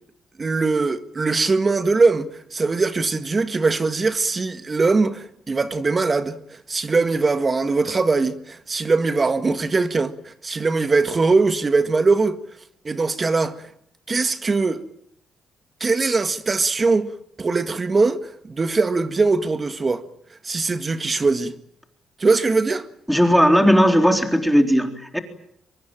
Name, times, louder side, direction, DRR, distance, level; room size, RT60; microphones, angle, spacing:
voice 1, 0.4-12.4 12.8-13.7 14.1-14.8 15.8-17.1 17.4-20.0 20.4-21.5 22.2-22.9, right 3 dB, 30° right, 1.8 m, -21 dB
voice 2, 23.1-25.2, equal, ahead, 3.8 m, -17 dB
24.5 x 23.0 x 9.0 m
cardioid pair, 90°, 0 cm